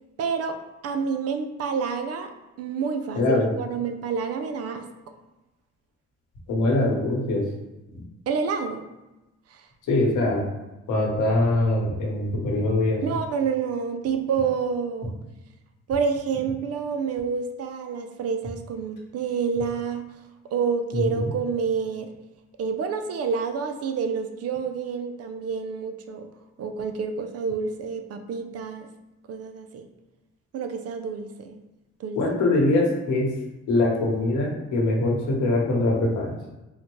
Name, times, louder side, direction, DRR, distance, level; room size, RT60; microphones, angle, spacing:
voice 1, 0.2-0.6 0.8-2.3 2.6-4.9 8.3-8.9 9.5-9.7 13.0-15.1 15.9-20.1 20.5-22.1 22.6-26.3 26.6-28.9 29.3-29.9 30.5-31.6 32.0-32.2, right 5 dB, 55° right, 7 dB, 0.4 m, -28 dB
voice 2, 3.1-3.5 6.5-7.4 9.9-10.4 10.9-13.0 20.9-21.3 32.1-33.3 33.7-36.3, left 2 dB, 75° left, -2 dB, 1.1 m, -23 dB
3.9 x 2.1 x 3.1 m, 1.0 s
cardioid pair, 90°, 30 cm